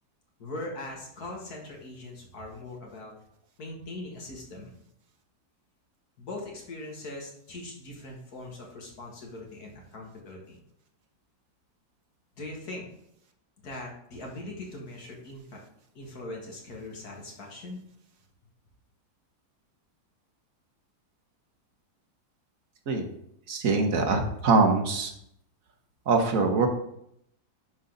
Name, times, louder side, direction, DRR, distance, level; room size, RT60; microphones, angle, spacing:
voice 1, 0.4-3.1 3.6-4.7 6.2-10.6 12.4-12.9 13.6-15.6 16.0-17.8, left 2 dB, 55° left, -1 dB, 2.2 m, -41 dB
voice 2, 23.5-25.1 26.1-26.7, right 4 dB, 50° right, 4 dB, 1.2 m, -23 dB
10.5 x 4.0 x 3.9 m, 0.74 s
omnidirectional pair, 2.1 m